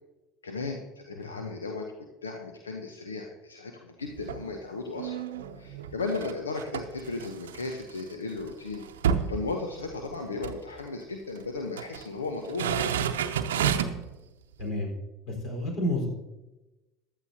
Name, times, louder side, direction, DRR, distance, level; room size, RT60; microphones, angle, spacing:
voice 1, 0.4-1.9 2.2-5.2 5.6-8.8 9.3-12.9, left 3 dB, 90° left, 4 dB, 0.9 m, -35 dB
sound 1, 4.0-4.5 4.9-8.0 8.4-8.5 8.7-10.1 10.4-10.6 11.4-12.0 12.4-14.1 14.6-14.7, right 8 dB, 80° right, 0.7 m, -30 dB
voice 2, 14.6-14.9 15.3-16.1, left 1 dB, 50° left, 1 dB, 4.4 m, -30 dB
15.5 x 11.0 x 2.8 m, 1.1 s
hypercardioid pair, 75°, 0 cm